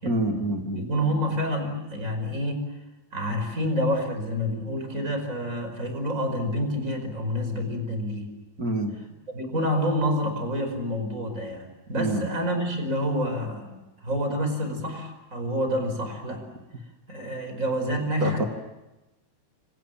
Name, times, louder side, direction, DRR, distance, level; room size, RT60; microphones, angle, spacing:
voice 1, 0.0-0.8 8.6-8.9 12.0-12.2 18.2-18.4, right 2 dB, 40° right, 4 dB, 1.2 m, -26 dB
voice 2, 0.7-2.6 3.1-8.3 9.3-16.4 17.1-18.5, equal, 15° right, 7 dB, 5.0 m, -28 dB
29.5 x 26.0 x 7.4 m, 1.0 s
omnidirectional pair, 5.6 m